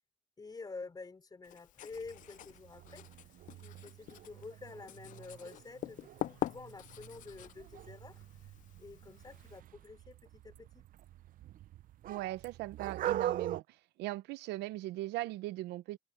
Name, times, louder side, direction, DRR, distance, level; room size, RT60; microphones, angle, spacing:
voice 1, 0.4-3.1 3.6-8.2 8.8-10.9, left 4 dB, 25° left, 3.3 m, -49 dB
Writing, 1.4-9.6, left 13 dB, 50° left, 0.4 m, -45 dB
sound 1, 1.9-13.6, right 12 dB, 55° right, 0.6 m, -43 dB
voice 2, 12.1-13.6 14.0-16.0, right 16 dB, 85° right, 0.8 m, -39 dB
cardioid pair, 110°, 17 cm